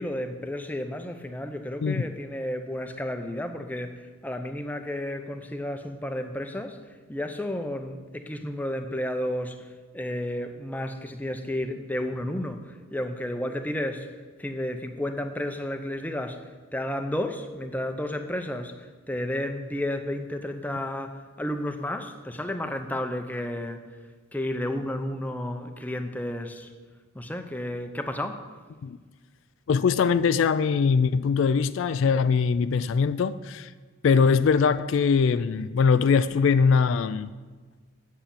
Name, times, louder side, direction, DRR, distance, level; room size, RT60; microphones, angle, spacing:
voice 1, 0.0-14.1 14.4-23.9 24.3-26.7 27.1-28.4, left 1 dB, 10° left, 0.6 m, -32 dB
voice 2, 29.7-33.7 34.0-37.3, left 5 dB, 65° left, 0.3 m, -22 dB
8.0 x 7.3 x 8.4 m
head